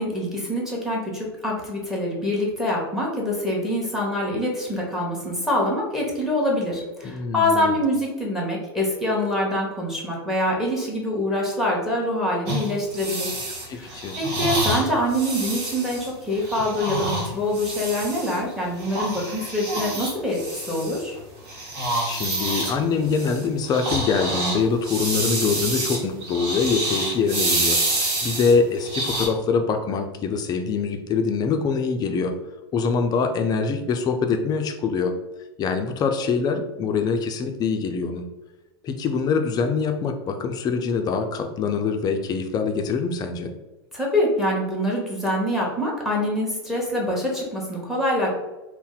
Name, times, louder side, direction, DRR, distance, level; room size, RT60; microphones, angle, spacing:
voice 1, 0.0-13.3 13.7-21.1 43.9-48.3, left 1 dB, ahead, -3 dB, 1.0 m, -25 dB
voice 2, 7.0-7.8 13.6-14.2 22.0-32.3 32.7-35.1 35.6-38.2 38.8-43.5, left 5 dB, 30° left, 6 dB, 0.4 m, -24 dB
sound 1, 12.5-18.4 18.8-21.2 21.5-29.3, right 1 dB, 50° right, 1.2 m, -28 dB
2.6 x 2.1 x 3.9 m, 1.1 s
hypercardioid pair, 100°, 14 cm